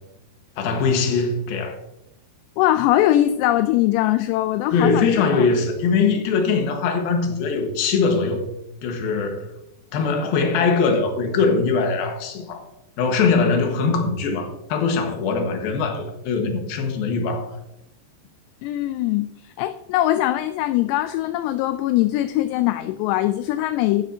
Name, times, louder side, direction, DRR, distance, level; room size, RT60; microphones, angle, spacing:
voice 1, 0.6-1.8 4.7-8.5 8.8-9.5 9.9-12.6 13.0-17.5, left 4 dB, 65° left, 3.1 m, -21 dB
voice 2, 2.6-5.3 18.6-24.0, left 14 dB, 85° left, 2.6 m, -21 dB
12.5 x 11.5 x 2.8 m
omnidirectional pair, 5.1 m